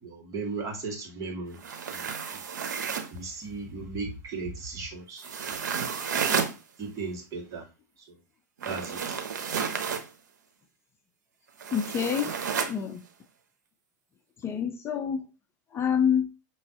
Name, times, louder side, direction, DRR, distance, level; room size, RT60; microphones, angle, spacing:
voice 1, 0.0-1.6 1.9-2.4 3.1-5.3 6.8-7.7 8.0-8.2 8.6-9.2, right 3 dB, 35° right, -1 dB, 1.9 m, -37 dB
sound 1, 1.5-3.2 5.2-6.6 8.6-10.1 11.6-12.8, right 6 dB, 85° right, 0.8 m, -31 dB
voice 2, 11.7-12.3 12.7-13.0 14.4-15.2 15.7-16.3, left 8 dB, 25° left, 6 dB, 0.6 m, -27 dB
6.0 x 3.1 x 2.8 m, 0.28 s
hypercardioid pair, 110°, 10 cm